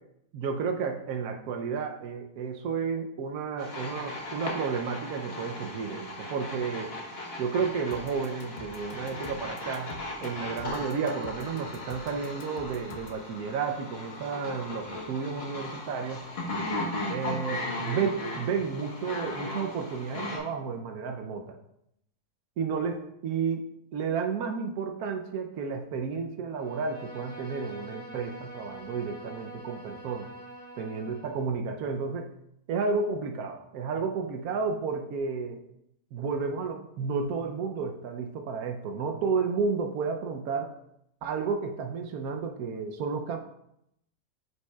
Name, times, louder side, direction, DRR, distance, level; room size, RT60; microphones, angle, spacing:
voice 1, 0.3-6.9 7.4-10.0 10.2-16.3 17.1-21.6 22.6-30.3 30.8-32.3 32.7-35.6 36.1-40.7 41.2-43.4, right 5 dB, 80° right, 4 dB, 1.2 m, -32 dB
sound 1, 3.6-20.4, left 2 dB, 45° left, 1.4 m, -37 dB
sound 2, 7.9-13.2, left 6 dB, 80° left, 0.4 m, -47 dB
Bowed string instrument, 26.5-31.5, right 1 dB, 5° left, 1.1 m, -45 dB
9.3 x 5.5 x 2.3 m, 0.78 s
omnidirectional pair, 1.5 m